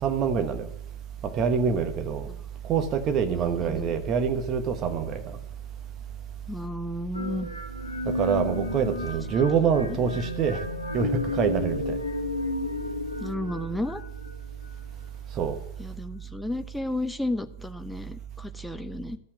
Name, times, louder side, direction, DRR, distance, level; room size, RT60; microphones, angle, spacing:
voice 1, 0.0-0.7 1.2-2.3 2.7-5.4 8.0-10.6 10.9-12.0 15.4-15.6, right 6 dB, 30° right, 8 dB, 1.2 m, -26 dB
voice 2, 3.3-3.9 6.5-7.5 9.3-9.4 9.9-10.1 13.2-14.0 15.8-19.2, left 1 dB, 5° left, 9 dB, 0.8 m, -33 dB
sound 1, 7.1-14.9, left 2 dB, 80° left, 1.1 m, -32 dB
13.0 x 5.8 x 8.0 m, 0.78 s
figure-of-eight pair, 90°, 0 cm